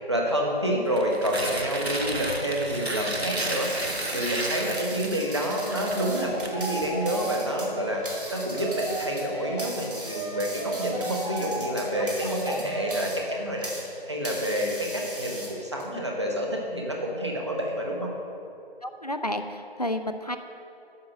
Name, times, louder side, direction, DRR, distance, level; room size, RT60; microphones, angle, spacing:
voice 1, 0.1-3.7 4.1-8.0 8.3-13.7 14.1-18.1, equal, 25° right, -1 dB, 1.0 m, -28 dB
Tearing, 0.9-7.1, right 1 dB, 85° right, 1.3 m, -33 dB
sound 1, 3.0-13.9 14.2-15.8, right 1 dB, 55° right, 2.5 m, -39 dB
sound 2, 5.1-9.6 10.0-13.2, right 2 dB, ahead, 0.9 m, -35 dB
voice 2, 12.3-12.6 18.8-20.4, left 1 dB, 40° left, 7 dB, 0.5 m, -31 dB
9.6 x 6.0 x 6.5 m, 2.7 s
figure-of-eight pair, 165°, 31 cm